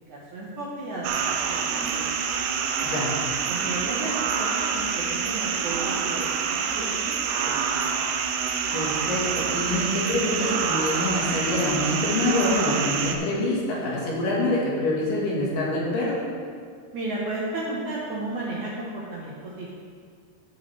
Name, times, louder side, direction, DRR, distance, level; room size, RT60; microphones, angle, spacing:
voice 1, 0.1-2.3 3.5-8.2 16.9-19.7, right 2 dB, 65° right, -6 dB, 2.1 m, -34 dB
sound 1, 1.0-13.2, right 6 dB, 90° right, 2.8 m, -27 dB
voice 2, 2.8-3.1 8.7-16.2, left 1 dB, 60° left, -5 dB, 3.0 m, -26 dB
14.0 x 8.2 x 3.4 m, 2.1 s
omnidirectional pair, 4.8 m